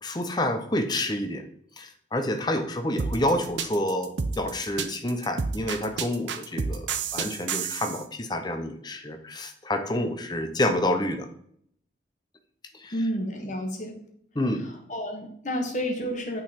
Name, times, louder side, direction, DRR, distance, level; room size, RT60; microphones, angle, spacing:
voice 1, 0.0-1.4 1.8-11.3 12.8-12.9 14.4-14.6 15.8-15.9, left 1 dB, 20° left, 7 dB, 0.6 m, -28 dB
sound 1, 3.0-8.0, right 5 dB, 75° right, 0.6 m, -30 dB
voice 2, 12.9-14.0 14.9-16.4, equal, 40° left, 2 dB, 1.3 m, -30 dB
8.9 x 3.9 x 4.2 m, 0.67 s
head